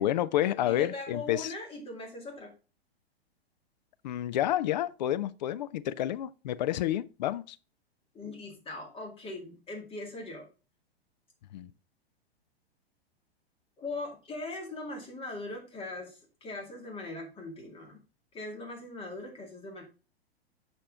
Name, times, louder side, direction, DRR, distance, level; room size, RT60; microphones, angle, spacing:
voice 1, 0.0-1.5 4.0-7.6 11.5-11.7, left 12 dB, 45° left, 0.4 m, -29 dB
voice 2, 0.6-2.5 8.1-10.5 13.8-18.0 18.3-19.8, left 2 dB, 15° left, 2.2 m, -40 dB
6.6 x 5.9 x 3.6 m
figure-of-eight pair, 105°, 32 cm